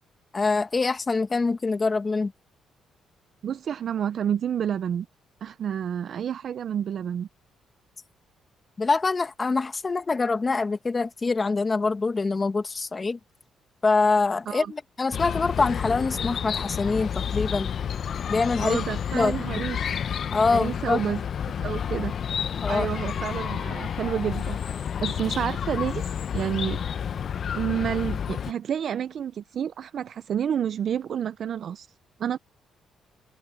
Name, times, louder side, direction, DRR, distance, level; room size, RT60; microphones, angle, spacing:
voice 1, 0.3-2.3 8.8-13.2 13.8-17.7 18.3-18.8 19.1-19.6 20.3-21.0 22.6-22.9, left 3 dB, 30° left, 1.9 m, -25 dB
voice 2, 3.4-5.1 5.4-7.3 14.5-14.7 18.6-20.0 20.5-21.2 21.5-22.1 22.7-26.0 26.3-26.8 27.5-31.9 32.2-32.4, right 9 dB, 60° right, 0.5 m, -29 dB
Chirp tweet, 15.1-28.5, left 8 dB, 55° left, 0.7 m, -30 dB
cardioid pair, 90°, 0 cm